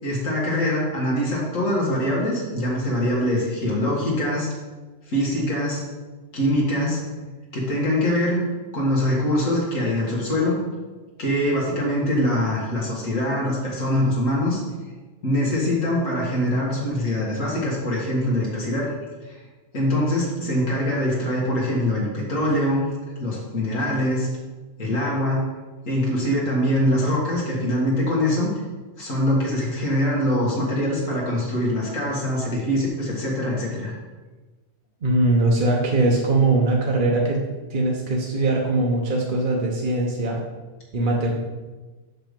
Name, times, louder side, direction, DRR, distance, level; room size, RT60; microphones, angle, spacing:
voice 1, 0.0-4.5 5.1-5.8 6.3-7.0 7.5-8.4 8.7-10.6 11.2-14.6 15.2-18.9 19.3-19.4 19.7-22.9 23.2-24.3 24.8-25.5 25.9-28.5 29.0-33.9, left 1 dB, 90° left, -5 dB, 2.1 m, -23 dB
voice 2, 35.0-37.4 37.7-40.4 40.9-41.3, right 2 dB, 45° right, -2 dB, 1.0 m, -21 dB
6.5 x 5.8 x 5.2 m, 1.3 s
omnidirectional pair, 1.3 m